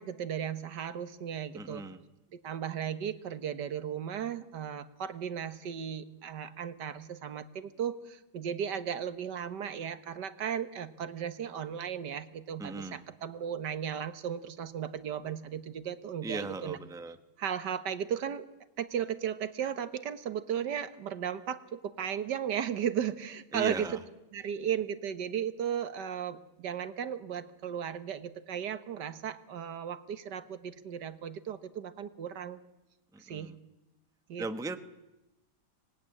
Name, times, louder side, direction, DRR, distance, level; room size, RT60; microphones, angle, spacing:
voice 1, 0.0-1.8 2.3-16.8 17.4-18.5 18.8-23.9 24.3-32.6 33.2-33.5 34.3-34.4, right 8 dB, 80° right, 13 dB, 1.8 m, -35 dB
voice 2, 1.5-2.0 12.6-13.0 16.2-17.2 23.5-24.0 33.1-33.5 34.4-34.8, right 3 dB, 5° right, 10 dB, 0.9 m, -38 dB
25.0 x 19.5 x 9.9 m, 0.97 s
omnidirectional pair, 1.8 m